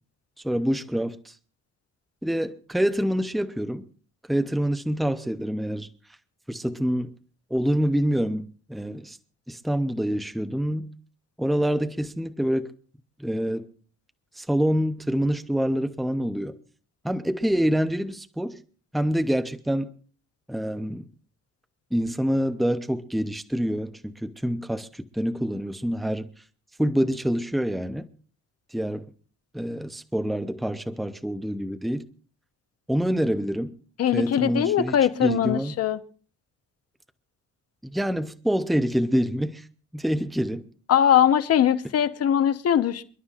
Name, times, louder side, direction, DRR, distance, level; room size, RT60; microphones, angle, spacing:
voice 1, 0.4-1.3 2.2-3.9 4.3-5.9 6.5-7.1 7.5-9.2 9.5-10.9 11.4-12.7 13.2-13.7 14.4-16.6 17.0-18.6 18.9-19.9 20.5-21.0 21.9-26.3 26.8-28.1 28.7-29.1 29.5-32.1 32.9-33.7 34.1-35.7 37.8-39.7 39.9-40.6, equal, ahead, 0.6 m, -26 dB
voice 2, 34.0-36.0 40.9-43.0, left 10 dB, 55° left, 0.9 m, -21 dB
28.5 x 11.5 x 2.4 m
wide cardioid pair, 175°, 29 cm